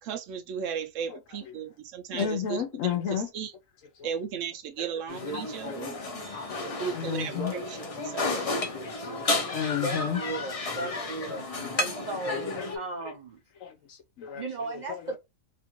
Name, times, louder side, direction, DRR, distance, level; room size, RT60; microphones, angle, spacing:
voice 1, 0.0-3.5 4.0-5.9 6.8-8.5, right 7 dB, 70° right, 0.9 m, -36 dB
voice 2, 2.1-3.3 4.0-4.1 4.8-4.9 5.3-5.4 5.9-7.5 8.3-10.2 10.8-11.0 11.3-11.4 11.6-11.7 12.5-13.1 13.6-14.5 14.7-15.0, left 8 dB, 80° left, 1.0 m, -34 dB
sound 1, 5.1-12.8, left 2 dB, 40° left, 0.5 m, -32 dB
voice 3, 9.8-11.5 11.8-13.4 14.3-15.2, right 2 dB, 45° right, 0.6 m, -36 dB
2.9 x 2.5 x 2.9 m
omnidirectional pair, 1.4 m